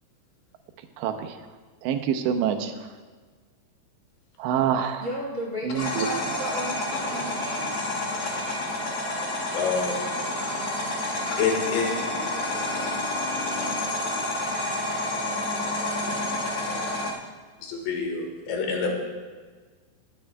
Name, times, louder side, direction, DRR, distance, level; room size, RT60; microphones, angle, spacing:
voice 1, 1.0-1.4 1.8-2.7 4.4-5.1 5.6-6.1, right 8 dB, 90° right, 6 dB, 3.0 m, -26 dB
voice 2, 5.0-7.8, equal, 55° right, -3 dB, 1.0 m, -34 dB
sound 1, 5.7-17.1, left 1 dB, 55° left, 1.5 m, -29 dB
voice 3, 9.5-10.1 11.4-11.9 17.6-18.9, left 5 dB, 90° left, 1 dB, 3.8 m, -27 dB
21.5 x 9.7 x 2.2 m, 1.5 s
omnidirectional pair, 5.0 m